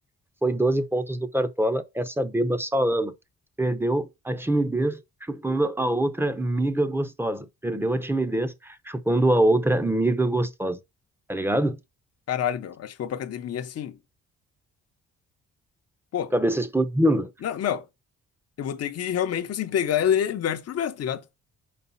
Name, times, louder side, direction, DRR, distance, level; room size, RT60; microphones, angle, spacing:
voice 1, 0.4-3.1 3.6-10.8 11.3-11.8 16.3-17.3, right 1 dB, 5° right, 0.8 m, -24 dB
voice 2, 12.3-14.0 16.1-16.3 17.4-17.9 18.6-21.2, left 9 dB, 55° left, 0.8 m, -27 dB
5.1 x 4.2 x 5.6 m
cardioid pair, 90°, 30 cm